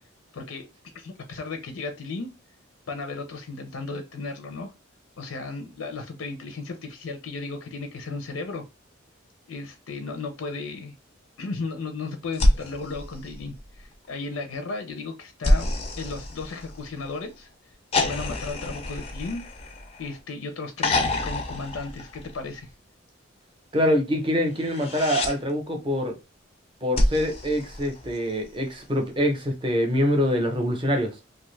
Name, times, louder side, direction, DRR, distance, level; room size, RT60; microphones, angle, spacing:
voice 1, 0.3-0.7 0.9-2.3 2.9-4.7 5.2-8.6 9.5-10.9 11.4-15.7 16.0-17.5 18.0-19.4 20.0-22.7, left 3 dB, 85° left, 0.5 m, -35 dB
sound 1, 12.3-13.9 15.4-17.1 17.9-20.2 20.8-22.6 24.6-25.4 26.9-28.4 30.0-30.1, left 1 dB, 30° left, 0.4 m, -27 dB
voice 2, 23.7-26.2 26.8-31.1, equal, 25° right, 0.6 m, -24 dB
2.5 x 2.4 x 3.1 m
head